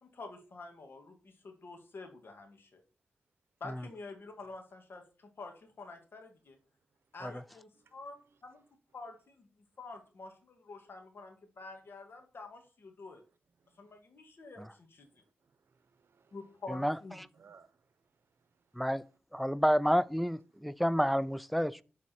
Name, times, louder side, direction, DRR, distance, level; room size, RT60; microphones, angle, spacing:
voice 1, 0.0-2.8 3.6-6.6 7.1-8.6 8.9-13.2 13.8-15.1 16.3-17.2, left 3 dB, 65° left, 2.0 m, -48 dB
voice 2, 7.8-8.4 13.6-14.0 15.0-16.6 17.3-18.8, right 6 dB, 70° right, 0.9 m, -65 dB
voice 3, 19.3-21.8, equal, ahead, 0.4 m, -29 dB
12.0 x 4.2 x 4.5 m
cardioid pair, 75°, 4 cm